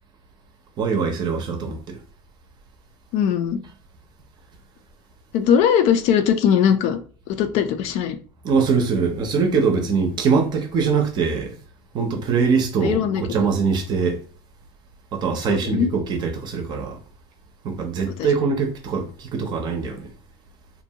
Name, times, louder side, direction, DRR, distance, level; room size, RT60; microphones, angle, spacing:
voice 1, 0.8-2.0 8.4-11.6 11.9-14.2 15.1-17.0 17.6-20.1, right 5 dB, 35° right, 0.6 m, -22 dB
voice 2, 3.1-3.6 5.3-7.0 7.3-8.2 12.8-13.2 15.5-15.9 18.2-18.3, left 8 dB, 60° left, 0.4 m, -20 dB
2.6 x 2.2 x 2.8 m
cardioid pair, 160°, 13 cm